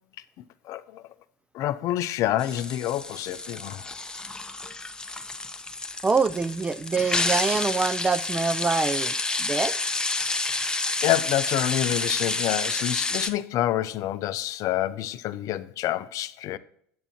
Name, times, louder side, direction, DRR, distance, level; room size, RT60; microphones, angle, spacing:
voice 1, 0.6-1.0 1.5-3.9 10.4-16.6, left 13 dB, 50° left, 0.5 m, -28 dB
sound 1, 2.4-13.3, left 3 dB, 10° left, 0.8 m, -29 dB
voice 2, 6.0-9.8, right 4 dB, 15° right, 0.3 m, -25 dB
8.9 x 8.6 x 2.9 m
hypercardioid pair, 80°, 8 cm